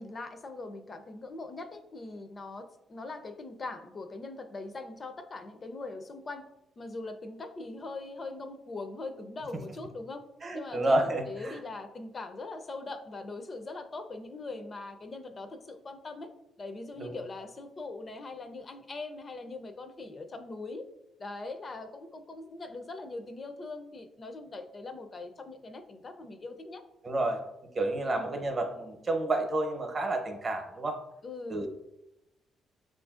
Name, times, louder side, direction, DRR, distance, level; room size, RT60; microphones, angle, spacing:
voice 1, 0.0-6.4 6.8-10.2 10.5-16.3 16.6-20.8 21.2-26.8 28.1-28.4 31.2-31.7, left 3 dB, 35° left, 7 dB, 0.4 m, -41 dB
voice 2, 10.4-11.6 17.0-17.1 27.0-27.4 27.7-31.0 31.5-31.7, right 2 dB, 35° right, 4 dB, 0.7 m, -30 dB
5.7 x 2.5 x 2.4 m, 0.88 s
cardioid pair, 90°, 0 cm